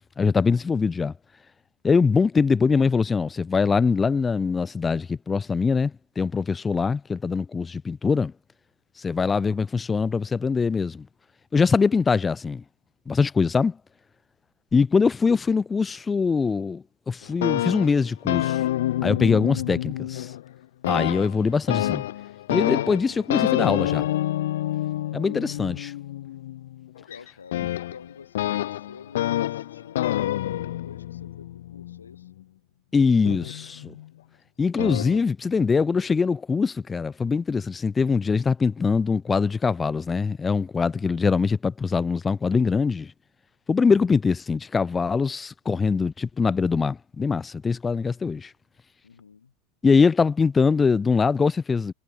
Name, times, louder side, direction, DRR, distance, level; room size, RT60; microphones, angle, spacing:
voice 1, 0.2-1.1 1.8-8.3 9.0-11.1 11.5-12.6 13.1-13.8 14.7-18.6 19.0-20.3 20.9-22.0 22.5-24.1 25.1-25.9 32.9-34.0 34.6-43.1 43.7-48.5 49.8-51.9, left 5 dB, 20° left, 0.5 m, -23 dB
sound 1, 17.2-20.5 20.8-32.4 33.3-34.1 34.8-35.2, left 13 dB, 70° left, 1.1 m, -28 dB
voice 2, 27.0-32.3 49.0-49.5, left 6 dB, 90° left, 1.5 m, -48 dB
hypercardioid pair, 90°, 0 cm